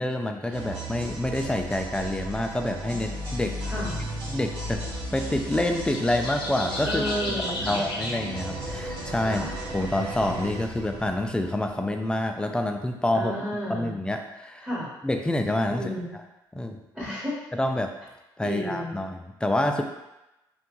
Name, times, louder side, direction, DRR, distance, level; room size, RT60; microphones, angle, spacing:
voice 1, 0.0-3.5 4.3-4.8 5.1-7.0 7.6-9.4 9.7-13.3 13.7-14.7 15.0-15.9 16.5-16.8 17.5-17.9 18.4-19.8, left 1 dB, 10° left, 4 dB, 0.3 m, -27 dB
sound 1, 0.5-12.2, right 1 dB, 90° right, 0.8 m, -35 dB
voice 2, 3.6-4.0 6.8-7.8 9.2-9.5 13.1-14.0 14.6-14.9 15.8-16.1 16.9-17.3 18.4-18.9, left 1 dB, 10° right, -7 dB, 1.1 m, -32 dB
sound 2, 4.6-11.0, left 2 dB, 60° left, 0.6 m, -37 dB
2.5 x 2.2 x 2.9 m, 0.97 s
supercardioid pair, 65°, 10 cm